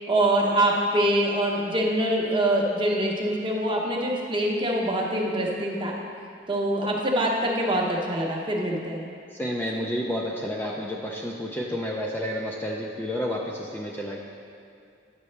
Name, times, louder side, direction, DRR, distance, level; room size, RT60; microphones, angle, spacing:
voice 1, 0.1-5.9 6.5-9.0, right 1 dB, 25° right, -1 dB, 0.8 m, -24 dB
voice 2, 9.3-14.2, equal, 10° left, -2 dB, 0.4 m, -30 dB
9.5 x 6.6 x 3.3 m, 2.5 s
head